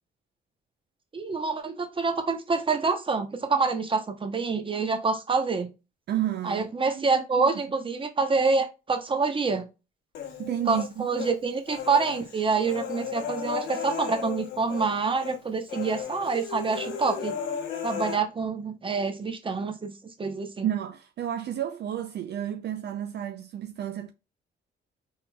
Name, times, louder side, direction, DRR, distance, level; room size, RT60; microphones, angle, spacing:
voice 1, 1.1-5.7 6.4-9.6 10.7-17.4 17.8-20.7, right 4 dB, 25° right, 0.9 m, -27 dB
voice 2, 6.1-7.5 10.4-11.1 20.6-24.1, right 11 dB, 60° right, 0.5 m, -31 dB
Human voice, 10.1-11.3 11.7-14.9 15.2-15.4 15.7-18.2, left 7 dB, 75° left, 1.1 m, -35 dB
4.1 x 3.7 x 2.3 m
cardioid pair, 90°, 20 cm